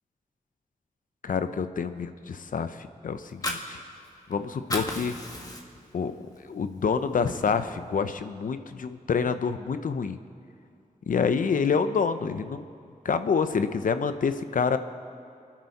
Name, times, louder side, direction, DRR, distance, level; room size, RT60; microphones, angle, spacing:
voice 1, 1.2-3.8 4.3-5.2 5.9-6.1 6.4-10.2 11.1-12.6 13.0-14.8, left 5 dB, 70° left, 10 dB, 0.7 m, -27 dB
Fire, 3.2-4.3 4.6-5.9 6.3-6.5 6.9-7.9, left 1 dB, 25° left, 1.9 m, -34 dB
28.5 x 10.0 x 4.2 m, 2.5 s
wide cardioid pair, 80°, 14 cm